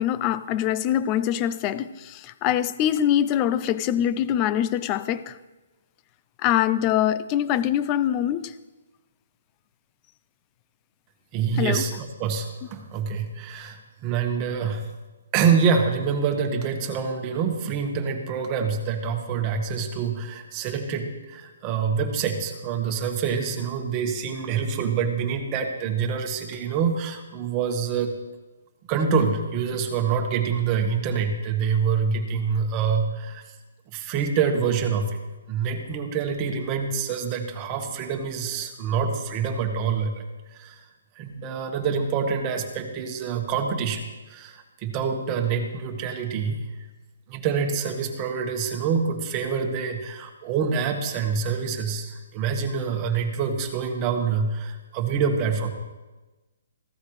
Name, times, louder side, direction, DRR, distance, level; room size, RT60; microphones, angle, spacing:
voice 1, 0.0-5.4 6.4-8.5 11.6-11.8, left 11 dB, 25° left, 0.5 m, -24 dB
voice 2, 11.3-14.9 15.3-28.1 28.9-33.4 33.9-35.1 35.5-40.2 40.5-40.8 41.1-46.6 47.3-55.7, right 6 dB, 25° right, 1.5 m, -26 dB
15.0 x 14.0 x 3.2 m
hypercardioid pair, 160°, 0 cm